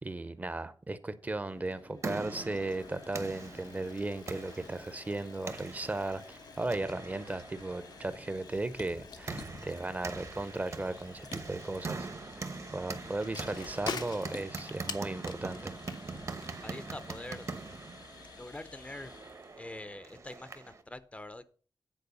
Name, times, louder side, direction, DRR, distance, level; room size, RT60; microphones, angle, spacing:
voice 1, 0.0-12.1 12.3-12.4 12.7-15.8, right 2 dB, 25° right, 0.6 m, -36 dB
sound 1, 1.5-19.6, left 4 dB, 70° left, 1.2 m, -53 dB
sound 2, 1.6-20.8, right 4 dB, 45° right, 0.9 m, -43 dB
Bicycle, 2.2-17.7, left 6 dB, 90° left, 0.9 m, -48 dB
voice 2, 16.6-17.4 18.3-19.1 19.6-21.5, left 2 dB, 20° left, 0.5 m, -44 dB
9.5 x 4.5 x 6.8 m
wide cardioid pair, 155°, 7 cm